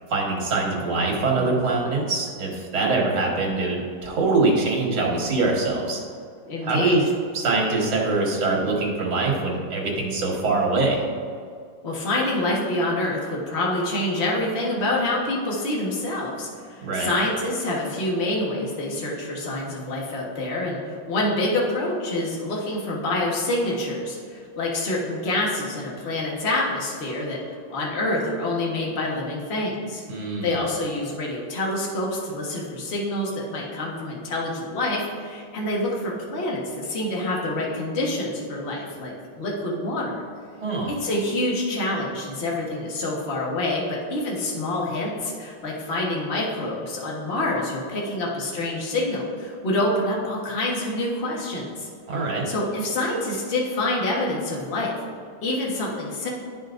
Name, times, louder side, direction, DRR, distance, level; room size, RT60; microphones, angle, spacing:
voice 1, 0.1-6.0 6.6-7.0 7.3-11.0 16.8-17.1 30.1-30.6 40.6-40.9 52.1-52.5, right 3 dB, 70° right, -2 dB, 2.1 m, -23 dB
voice 2, 6.5-7.1 11.8-27.4 27.7-30.0 30.4-40.1 41.0-51.9 52.4-54.9 55.4-56.3, left 1 dB, 35° left, -4 dB, 1.3 m, -27 dB
11.0 x 5.5 x 2.5 m, 2.2 s
omnidirectional pair, 2.3 m